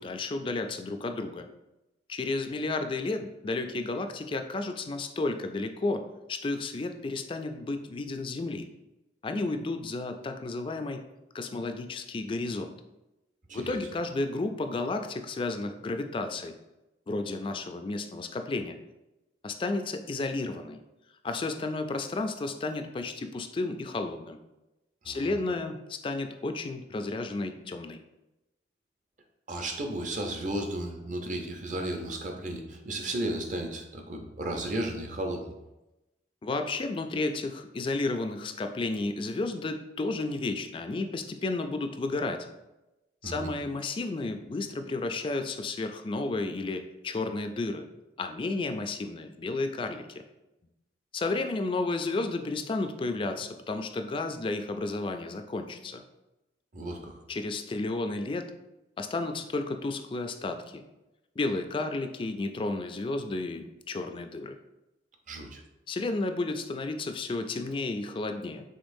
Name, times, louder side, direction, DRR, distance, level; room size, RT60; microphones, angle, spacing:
voice 1, 0.0-1.5 2.1-8.7 9.2-11.0 11.3-12.7 13.5-16.5 17.1-18.8 19.4-20.8 21.2-24.4 25.1-28.0 36.4-42.5 43.2-47.9 48.2-50.1 51.1-56.0 57.3-58.5 59.0-60.8 61.4-64.6 65.9-68.6, left 2 dB, 30° left, 6 dB, 0.3 m, -32 dB
voice 2, 29.5-35.4 43.2-43.5 56.7-57.1 65.3-65.6, right 1 dB, 45° right, 3 dB, 0.6 m, -34 dB
5.2 x 3.7 x 2.6 m, 0.97 s
head